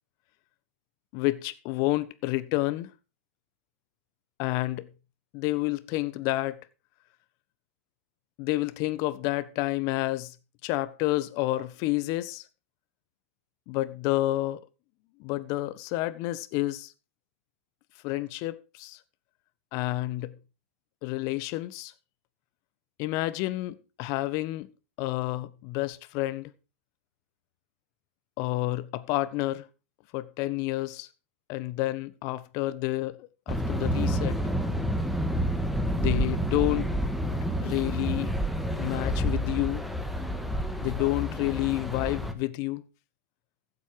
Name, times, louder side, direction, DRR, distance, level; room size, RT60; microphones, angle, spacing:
voice 1, 1.1-2.9 4.4-4.9 5.3-6.6 8.4-10.3 10.6-12.4 13.7-14.6 15.2-16.9 18.0-19.0 19.7-20.3 21.0-21.9 23.0-24.7 25.0-26.5 28.4-29.6 30.1-31.1 31.5-34.4 35.9-36.9 37.6-38.4 38.8-39.9 40.8-42.8, left 18 dB, 50° left, 1.3 m, -29 dB
sound 1, 33.5-42.3, equal, ahead, 1.8 m, -29 dB
15.0 x 8.2 x 4.8 m
hypercardioid pair, 115°, 7 cm